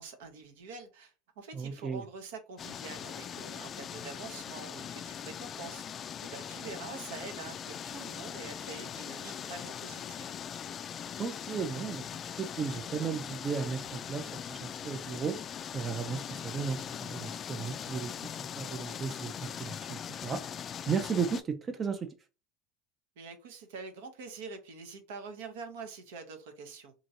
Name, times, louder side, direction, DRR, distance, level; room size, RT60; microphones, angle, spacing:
voice 1, 0.0-5.8 6.2-10.4 23.2-26.9, right 4 dB, 75° right, 0.7 m, -45 dB
voice 2, 1.5-2.0 11.2-12.1 12.4-15.5 15.7-18.1 18.4-20.5 20.9-22.1, right 6 dB, 35° right, 0.4 m, -35 dB
sound 1, 2.6-21.4, left 8 dB, 40° left, 0.3 m, -41 dB
2.9 x 2.5 x 2.7 m
hypercardioid pair, 80°, 0 cm